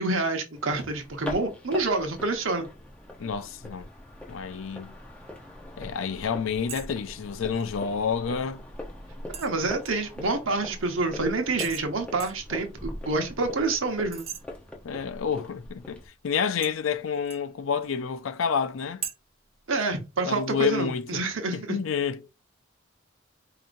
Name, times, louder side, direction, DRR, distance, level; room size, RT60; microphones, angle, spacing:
voice 1, 0.0-2.7 9.4-14.3 19.7-21.8, right 3 dB, 75° right, 1.0 m, -27 dB
sound 1, 0.5-16.1, left 1 dB, 5° left, 0.7 m, -42 dB
voice 2, 3.2-3.9 4.3-4.9 5.8-8.6 14.8-19.0 20.3-21.2 21.5-22.2, left 6 dB, 80° left, 0.4 m, -29 dB
sound 2, 6.7-6.9 7.2-7.7 9.3-10.2 11.6-11.9 12.2-12.5 14.1-14.4 16.6-17.5 19.0-19.1, right 7 dB, 30° right, 0.6 m, -39 dB
4.9 x 2.8 x 2.6 m
head